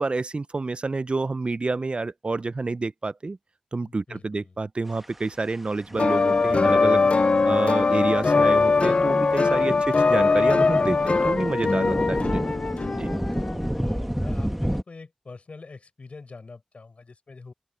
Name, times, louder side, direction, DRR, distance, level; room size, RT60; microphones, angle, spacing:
voice 1, 0.0-3.4 3.7-7.1 7.4-12.4 13.0-13.1, right 3 dB, 55° right, 0.4 m, -28 dB
voice 2, 3.8-4.5 9.6-10.4 13.7-17.5, left 4 dB, 80° left, 6.5 m, -45 dB
sound 1, 5.0-5.1 5.7-14.8, equal, 5° right, 1.3 m, -31 dB
sound 2, 6.0-13.6, left 4 dB, 65° left, 0.3 m, -21 dB
open air
wide cardioid pair, 55°, 2 cm